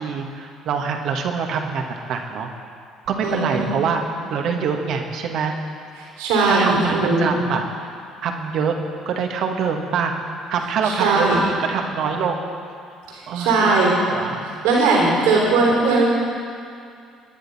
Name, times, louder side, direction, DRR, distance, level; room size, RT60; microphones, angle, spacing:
voice 1, 0.0-2.5 3.1-4.0 4.3-5.5 6.5-7.6 8.2-8.8 9.0-10.1 10.5-12.4 13.3-13.7 14.1-14.4, right 6 dB, 60° right, 3 dB, 1.5 m, -24 dB
voice 2, 3.2-3.7 6.2-7.4 10.8-11.4 13.1-14.0 14.4-16.1, right 3 dB, 75° right, -3 dB, 3.4 m, -19 dB
22.5 x 10.0 x 4.2 m, 2.4 s
hypercardioid pair, 55°, 0 cm